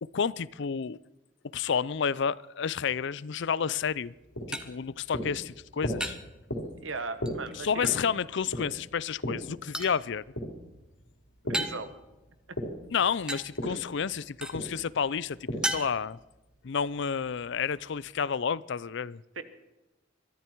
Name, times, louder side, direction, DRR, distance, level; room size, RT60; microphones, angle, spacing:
voice 1, 0.0-1.0 1.4-4.1 4.5-6.2 7.6-10.2 12.9-15.4 15.6-16.2 16.6-19.2, left 6 dB, 65° left, 0.5 m, -30 dB
sound 1, 3.9-18.2, right 1 dB, 5° right, 1.2 m, -41 dB
sound 2, 4.1-11.7 12.1-15.9, equal, 85° left, 4.0 m, -37 dB
voice 2, 6.8-7.9 11.5-11.9 13.7-13.8 19.3-19.4, right 3 dB, 90° right, 1.5 m, -37 dB
23.0 x 13.5 x 4.6 m
head